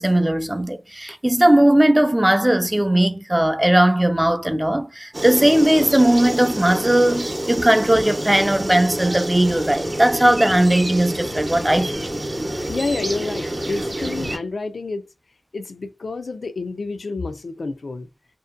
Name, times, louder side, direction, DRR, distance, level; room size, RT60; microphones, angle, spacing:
voice 1, 0.0-12.1, right 1 dB, 20° right, 0.4 m, -18 dB
sound 1, 5.1-14.4, right 1 dB, 50° right, 0.7 m, -27 dB
voice 2, 12.7-15.1 15.5-18.1, left 3 dB, 90° left, 0.4 m, -29 dB
2.7 x 2.1 x 2.3 m
cardioid pair, 40°, 0 cm